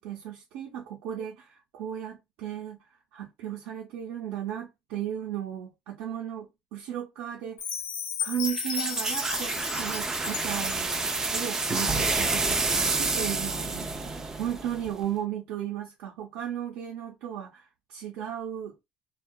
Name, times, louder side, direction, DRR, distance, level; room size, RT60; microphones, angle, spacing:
voice 1, 0.0-7.6 8.2-18.7, right 10 dB, 85° right, 0.6 m, -35 dB
Chime, 7.6-11.7, left 8 dB, 70° left, 0.8 m, -35 dB
sound 1, 8.4-15.0, right 3 dB, 15° right, 0.3 m, -29 dB
2.6 x 2.2 x 2.2 m
cardioid pair, 150°, 3 cm